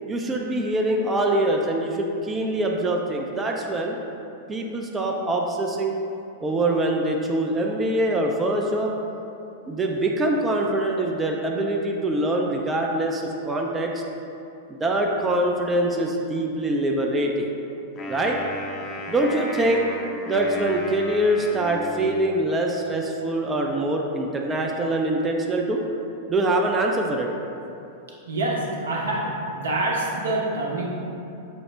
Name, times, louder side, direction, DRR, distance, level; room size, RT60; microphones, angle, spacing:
voice 1, 0.1-4.0 4.5-6.0 6.4-8.9 9.7-14.0 14.7-17.5 18.1-18.4 19.1-19.9 20.3-25.8 26.3-27.3, right 1 dB, 20° right, 0 dB, 0.4 m, -24 dB
Wind instrument woodwind instrument, 17.9-22.4, left 1 dB, 30° left, 0.6 m, -34 dB
voice 2, 28.3-31.0, right 2 dB, 80° right, -3 dB, 0.7 m, -26 dB
6.0 x 2.0 x 3.3 m, 2.8 s
hypercardioid pair, 100°, 0 cm